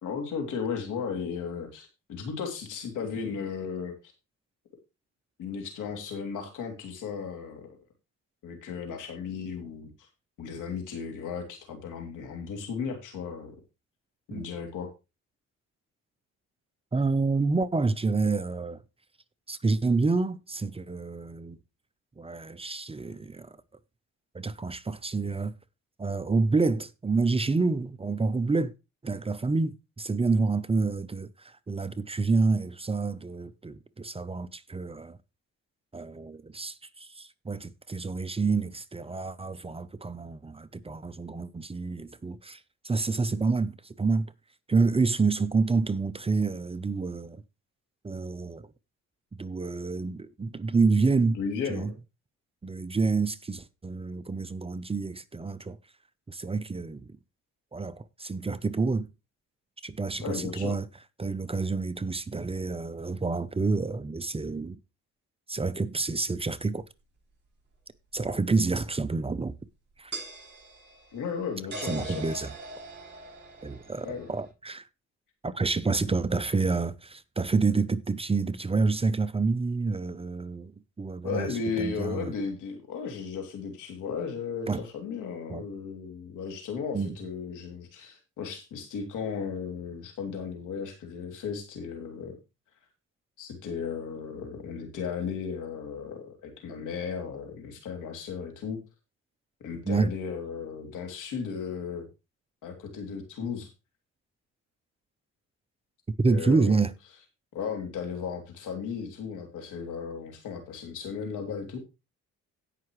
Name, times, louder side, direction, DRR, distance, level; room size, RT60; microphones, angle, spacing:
voice 1, 0.0-3.9 5.4-7.8 8.4-9.9 10.4-13.5 14.3-14.9 51.3-51.9 60.2-60.7 71.1-72.2 74.0-74.3 81.2-92.4 93.4-98.8 99.6-102.1 102.6-103.7 106.3-106.8 107.5-111.8, left 6 dB, 85° left, 3.0 m, -35 dB
voice 2, 16.9-18.8 19.5-21.6 22.2-23.6 24.3-25.5 26.0-28.7 29.0-35.2 35.9-44.3 44.7-47.4 48.0-48.7 49.4-51.4 51.7-51.9 52.6-55.8 56.3-57.2 57.7-59.1 59.8-60.9 61.2-64.8 65.5-66.8 68.1-69.6 70.0-70.1 71.8-72.5 73.6-74.9 75.4-80.7 81.0-82.3 84.7-84.8 85.5-85.6 86.9-87.2 99.8-100.1 106.2-106.9, right 4 dB, 20° right, 0.7 m, -28 dB
sound 1, 68.2-68.3 70.1-74.5, right 2 dB, 35° right, 7.2 m, -42 dB
17.5 x 5.8 x 3.2 m
cardioid pair, 90°, 30 cm